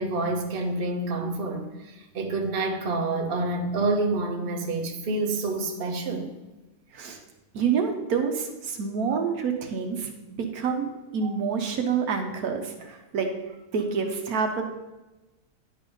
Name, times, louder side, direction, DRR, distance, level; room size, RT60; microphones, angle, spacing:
voice 1, 0.0-6.3 9.1-9.2 11.2-11.4, right 2 dB, 40° right, 2 dB, 1.0 m, -28 dB
voice 2, 7.5-10.1 10.4-13.3 13.7-14.6, right 6 dB, 75° right, 4 dB, 1.3 m, -27 dB
9.9 x 4.0 x 5.3 m, 1.1 s
omnidirectional pair, 1.6 m